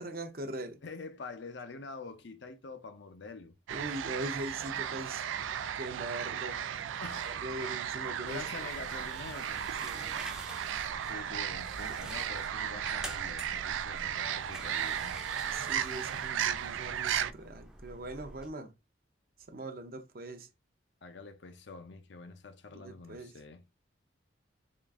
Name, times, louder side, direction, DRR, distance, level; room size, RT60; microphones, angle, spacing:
voice 1, 0.0-0.8 3.7-5.3 5.7-6.6 7.3-8.7 9.8-10.3 11.9-12.2 15.5-18.7 19.5-20.5 22.7-23.3, right 2 dB, 50° right, 0.6 m, -41 dB
voice 2, 0.8-3.5 7.0-7.8 8.2-9.6 10.7-15.2 21.0-23.6, left 4 dB, 70° left, 0.6 m, -46 dB
sound 1, 3.7-17.3, right 9 dB, 85° right, 0.3 m, -35 dB
sound 2, 8.3-18.5, right 1 dB, 5° right, 0.5 m, -48 dB
3.7 x 2.4 x 3.5 m
head